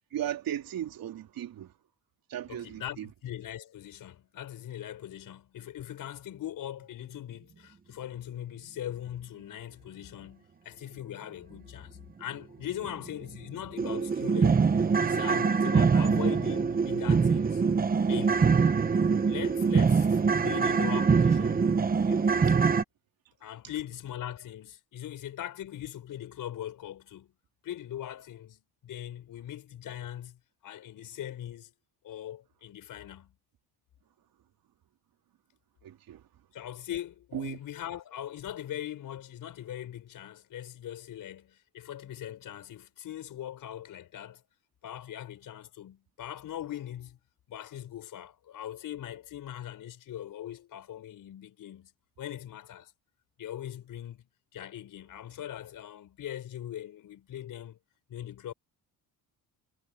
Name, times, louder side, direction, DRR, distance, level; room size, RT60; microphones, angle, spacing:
voice 1, 0.1-1.7 2.3-3.1 35.8-36.2 37.3-37.6, right 11 dB, 65° right, 3.4 m, -36 dB
voice 2, 2.5-17.6 18.1-18.6 19.3-21.7 22.1-22.6 23.4-27.3 27.6-31.7 32.0-33.3 36.5-44.4 44.8-47.2 47.5-51.9 52.2-52.9 53.4-57.8 58.1-58.5, left 11 dB, 60° left, 5.7 m, -41 dB
sound 1, 12.8-12.9 13.3-13.4 13.8-22.8, right 5 dB, 25° right, 1.1 m, -24 dB
cardioid pair, 170°, 37 cm